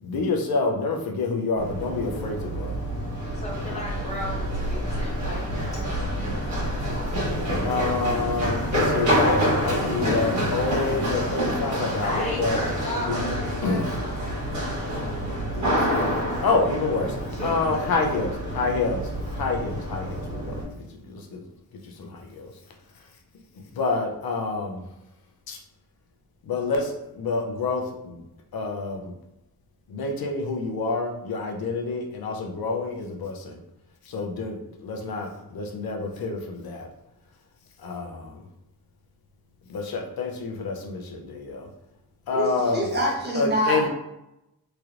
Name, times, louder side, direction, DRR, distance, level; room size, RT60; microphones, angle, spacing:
voice 1, 0.0-2.8 7.6-12.6 13.1-13.4 13.6-13.9 15.5-15.9 16.4-17.2 17.4-21.4 21.8-22.5 23.6-24.8 25.5-25.6 26.5-28.2 28.5-29.1 29.9-33.6 34.1-36.9 37.8-38.4 39.7-41.7 42.3-42.9 43.3-43.9, left 3 dB, 75° left, 1 dB, 0.6 m, -28 dB
Run, 1.6-20.6, equal, 50° right, 1.2 m, -27 dB
voice 2, 3.3-7.1 12.0-14.0 17.3-17.9, left 1 dB, 20° left, -4 dB, 0.9 m, -36 dB
voice 3, 42.3-43.9, equal, 30° right, -4 dB, 0.9 m, -25 dB
3.2 x 2.9 x 2.4 m, 0.89 s
wide cardioid pair, 125°, 36 cm